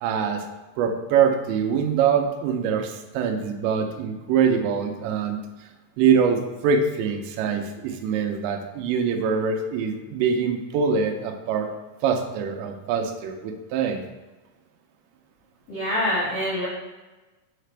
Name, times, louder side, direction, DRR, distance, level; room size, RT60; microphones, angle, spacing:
voice 1, 0.0-0.4 0.8-5.4 6.0-11.7 12.0-14.0, right 6 dB, 80° right, 5 dB, 2.9 m, -24 dB
voice 2, 15.7-16.7, equal, 65° left, -10 dB, 1.4 m, -25 dB
6.7 x 5.8 x 3.3 m, 1.2 s
omnidirectional pair, 5.2 m